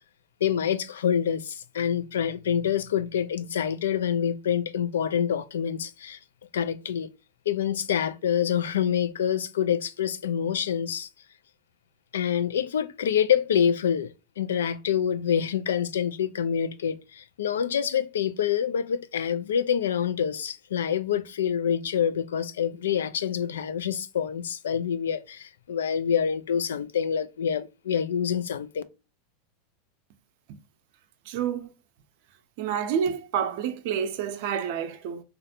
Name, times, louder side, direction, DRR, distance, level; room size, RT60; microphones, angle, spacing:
voice 1, 0.4-6.2 6.5-7.1 7.5-11.1 12.1-28.8, left 8 dB, 85° left, 0.3 m, -26 dB
voice 2, 31.3-31.7 32.6-35.2, right 8 dB, 60° right, 0.5 m, -29 dB
3.3 x 2.4 x 2.7 m
hypercardioid pair, 105°, 0 cm